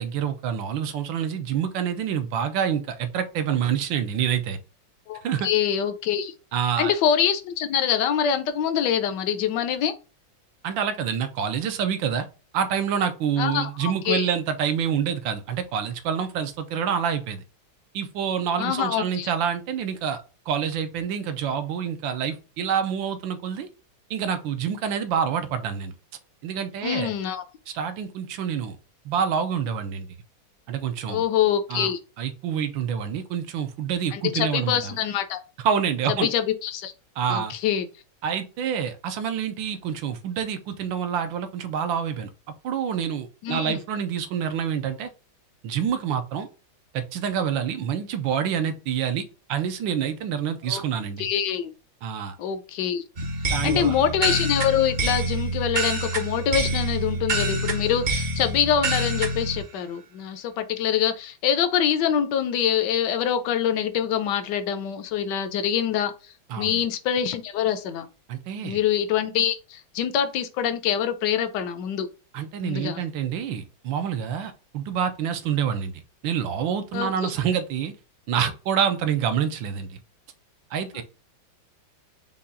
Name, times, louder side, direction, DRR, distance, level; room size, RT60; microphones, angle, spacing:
voice 1, 0.0-4.6 5.2-5.5 6.5-6.9 10.6-12.3 12.5-17.4 17.9-20.2 20.5-23.7 24.1-25.9 26.4-27.1 27.7-28.8 29.0-30.1 30.7-31.2 31.7-31.9 32.2-35.0 35.6-36.3 37.2-37.5 38.2-42.3 42.6-45.1 45.6-46.5 46.9-51.3 52.0-52.4 53.5-54.0 66.5-66.8 68.3-68.8 72.3-77.9 78.3-80.0 80.7-81.0, right 8 dB, 80° right, 1.4 m, -27 dB
voice 2, 5.1-6.3 6.8-9.9 13.4-14.3 18.6-19.3 26.8-27.4 31.1-32.0 34.1-35.4 36.2-36.9 37.3-37.9 43.4-43.8 50.7-50.8 51.2-51.7 52.4-53.0 53.6-66.1 66.6-68.1 68.6-72.1 72.6-73.0 76.9-77.3 80.9-81.0, left 9 dB, 70° left, 1.1 m, -25 dB
sound 1, 53.2-59.6, right 1 dB, 45° right, 0.7 m, -27 dB
5.6 x 2.3 x 3.6 m
omnidirectional pair, 2.2 m